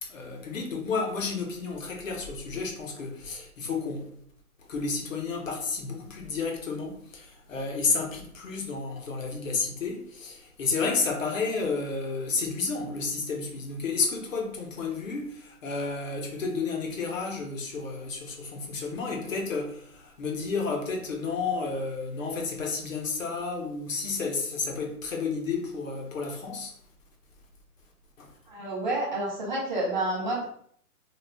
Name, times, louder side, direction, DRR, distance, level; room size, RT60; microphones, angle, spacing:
voice 1, 0.0-4.1 4.7-26.7 28.2-28.3, left 4 dB, 60° left, 0.8 m, -31 dB
voice 2, 28.5-30.4, right 1 dB, 30° right, 0.6 m, -29 dB
2.4 x 2.0 x 3.2 m
hypercardioid pair, 150°, 45 cm